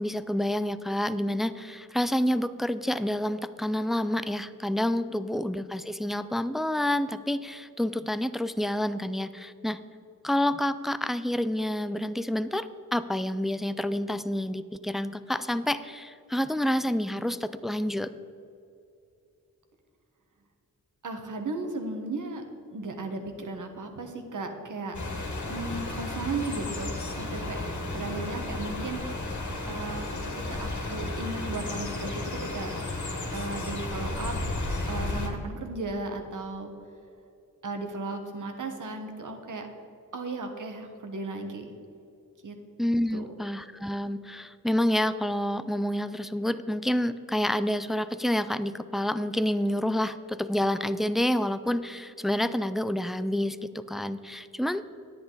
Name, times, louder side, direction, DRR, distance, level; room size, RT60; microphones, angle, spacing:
voice 1, 0.0-9.8 10.2-18.1 42.8-54.8, left 1 dB, ahead, 13 dB, 0.3 m, -28 dB
voice 2, 21.0-22.4 22.7-25.0 25.5-27.6 27.9-29.0 29.7-32.7 33.3-34.4 34.9-36.7 37.6-39.7 40.1-41.6 42.4-42.6 43.1-43.3, right 3 dB, 65° right, 4 dB, 1.3 m, -35 dB
sound 1, 24.9-35.3, left 2 dB, 60° left, 1.8 m, -33 dB
10.0 x 8.8 x 4.0 m, 2.7 s
cardioid pair, 70°, 34 cm